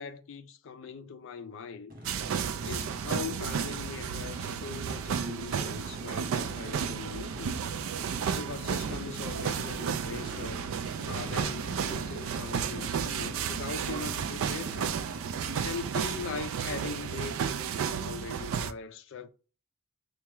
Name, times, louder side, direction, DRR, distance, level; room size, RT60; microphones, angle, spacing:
voice 1, 0.0-1.9 2.6-7.6 8.3-10.7 11.1-15.0 15.6-19.3, left 5 dB, 55° left, 0.4 m, -41 dB
Race car auto racing / Idling / Accelerating revving vroom, 1.9-16.4, equal, 40° right, 0.7 m, -46 dB
sound 1, 2.1-18.7, right 7 dB, 60° right, 0.3 m, -33 dB
4.6 x 2.3 x 3.0 m
head